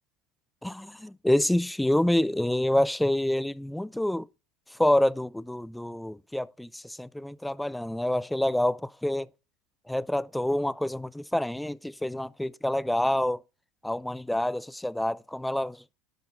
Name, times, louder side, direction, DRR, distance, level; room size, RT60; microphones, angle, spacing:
voice 1, 0.6-4.3 4.7-9.3 9.9-13.4 13.8-15.8, left 1 dB, 5° left, 0.3 m, -27 dB
10.0 x 5.7 x 3.6 m
hypercardioid pair, 85°, 0 cm